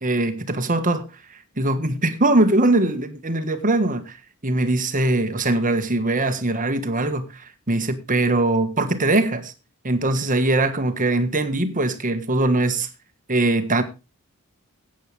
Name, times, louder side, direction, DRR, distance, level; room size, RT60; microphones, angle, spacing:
voice 1, 0.0-1.0 1.6-4.2 4.4-9.5 9.8-12.9 13.3-13.8, right 2 dB, 35° right, 1.6 m, -21 dB
15.0 x 9.1 x 3.5 m
head